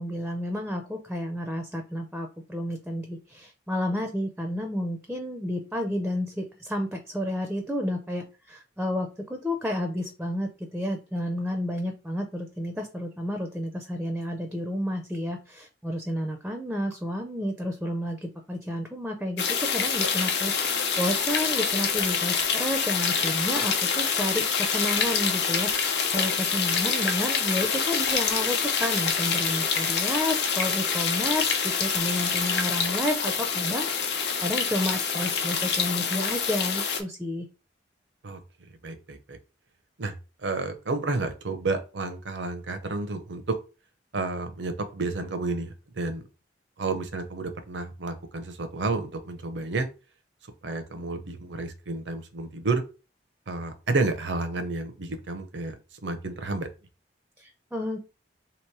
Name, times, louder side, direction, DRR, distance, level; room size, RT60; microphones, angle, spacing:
voice 1, 0.0-37.5 57.4-58.1, equal, 5° right, 4 dB, 0.4 m, -31 dB
sound 1, 19.4-37.0, left 6 dB, 65° left, 0.7 m, -26 dB
voice 2, 38.8-39.4 40.0-40.1 40.4-43.6 44.1-46.2 46.8-49.9 50.6-52.8 53.5-55.7 56.0-56.7, right 3 dB, 80° right, 8 dB, 0.7 m, -30 dB
3.0 x 3.0 x 4.6 m, 0.32 s
head